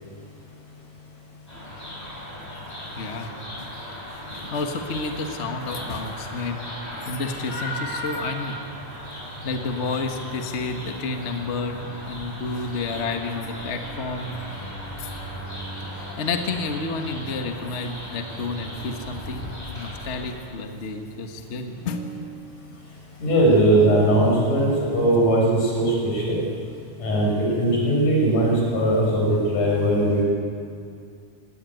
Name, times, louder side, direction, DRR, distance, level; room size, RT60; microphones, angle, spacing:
sound 1, 1.5-20.2, equal, 10° left, 6.5 m, -36 dB
voice 1, 2.9-3.7 4.1-6.6 7.0-8.6 9.1-14.4 15.0-15.1 15.9-22.9, left 3 dB, 40° left, 4 dB, 0.9 m, -31 dB
voice 2, 23.2-26.5 27.0-30.2, right 1 dB, 80° left, -3 dB, 7.1 m, -20 dB
18.5 x 17.5 x 9.2 m, 2.4 s
omnidirectional pair, 3.5 m